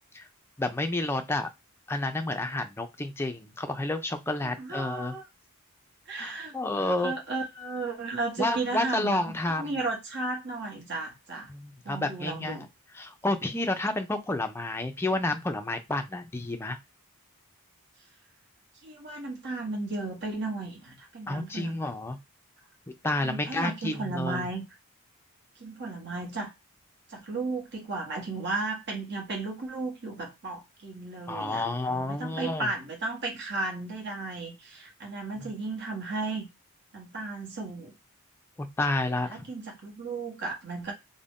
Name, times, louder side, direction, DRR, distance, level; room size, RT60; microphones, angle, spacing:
voice 1, 0.6-1.5 1.9-5.2 6.2-7.1 8.4-9.8 11.5-12.7 12.9-16.8 21.3-22.2 23.0-24.5 31.3-32.7 35.4-35.5 38.6-39.5, left 2 dB, 10° left, 6 dB, 0.4 m, -30 dB
voice 2, 4.4-5.2 6.1-9.2 9.5-11.5 11.8-12.7 18.8-21.8 23.2-24.6 25.6-26.5 27.1-36.5 36.9-37.9 39.3-40.9, right 3 dB, 50° right, 0 dB, 0.9 m, -34 dB
2.5 x 2.1 x 3.4 m, 0.21 s
head